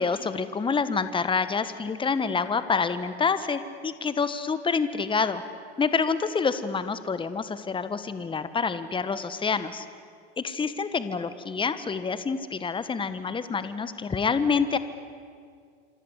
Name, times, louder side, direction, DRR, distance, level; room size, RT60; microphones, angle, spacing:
voice 1, 0.0-5.4 5.8-9.8 10.4-14.8, left 5 dB, 15° left, 12 dB, 1.4 m, -27 dB
27.0 x 25.5 x 8.2 m, 2.1 s
hypercardioid pair, 95°, 35 cm